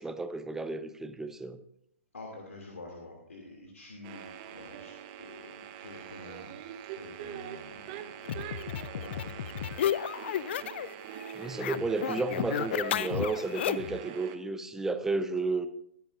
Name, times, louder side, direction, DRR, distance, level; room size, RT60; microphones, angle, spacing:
voice 1, 0.0-1.6 11.3-15.7, right 3 dB, 5° right, 10 dB, 0.8 m, -32 dB
voice 2, 2.1-6.6 6.9-9.7, left 2 dB, 80° left, -1 dB, 2.8 m, -48 dB
sound 1, 4.0-14.4, right 10 dB, 35° right, 1.1 m, -43 dB
sound 2, 8.3-10.9 11.2-14.0, left 10 dB, 50° left, 0.5 m, -33 dB
21.0 x 10.0 x 2.6 m, 0.70 s
figure-of-eight pair, 120°, 8 cm